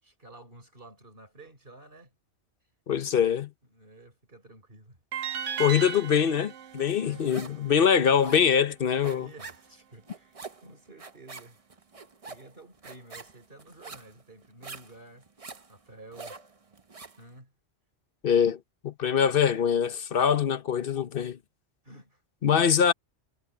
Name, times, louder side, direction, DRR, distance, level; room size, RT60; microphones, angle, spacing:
voice 1, 0.0-2.1 3.7-5.0 7.0-7.3 9.0-11.6 12.2-15.3 15.7-16.4 17.2-17.5 20.1-20.4 21.8-22.2, right 2 dB, 50° right, 4.8 m, -51 dB
voice 2, 2.9-3.5 5.6-9.3 18.2-18.6 18.8-21.4 22.4-22.9, left 7 dB, 55° left, 1.0 m, -23 dB
sound 1, 5.1-8.3, right 8 dB, 80° right, 1.2 m, -36 dB
sound 2, 6.8-7.7 7.9-17.2, right 4 dB, 30° right, 1.0 m, -46 dB
omnidirectional pair, 1.2 m